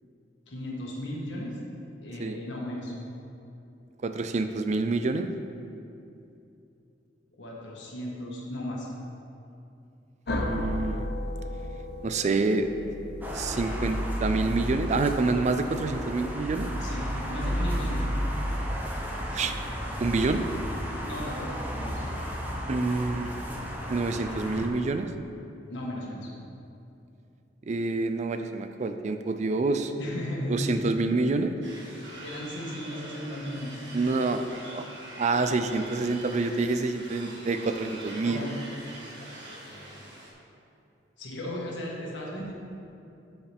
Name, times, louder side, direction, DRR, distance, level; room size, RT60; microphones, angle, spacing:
voice 1, 0.5-1.6 2.0-2.9 7.4-8.9 16.8-18.0 21.1-21.5 21.8-22.0 25.7-26.3 30.0-31.2 32.2-33.7 38.2-38.5 41.2-42.5, left 1 dB, 90° left, -3 dB, 1.7 m, -35 dB
voice 2, 4.0-5.3 10.3-11.1 12.0-12.7 13.3-16.7 19.3-19.5 20.0-20.4 22.7-23.3 23.9-25.1 27.7-29.9 30.5-31.5 33.9-34.9 35.2-38.4, right 3 dB, 40° right, 8 dB, 0.4 m, -27 dB
sound 1, 10.3-15.0, left 1 dB, 60° left, 0.7 m, -35 dB
sound 2, 13.2-24.7, equal, 10° right, 0.8 m, -32 dB
sound 3, 31.6-40.3, right 1 dB, 80° right, 1.6 m, -43 dB
13.0 x 4.7 x 3.5 m, 2.7 s
head